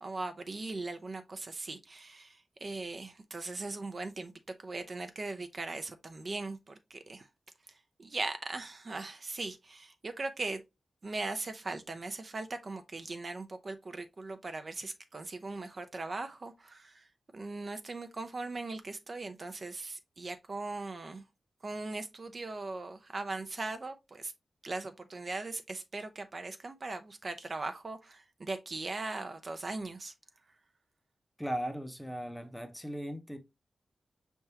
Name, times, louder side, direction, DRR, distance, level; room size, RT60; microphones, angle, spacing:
voice 1, 0.0-4.3 4.6-7.3 7.7-10.6 11.0-21.2 21.6-24.3 24.6-30.1, right 3 dB, 40° right, 0.5 m, -39 dB
voice 2, 31.4-33.4, equal, 5° left, 0.7 m, -37 dB
5.6 x 3.4 x 2.7 m
wide cardioid pair, 120°, 0 cm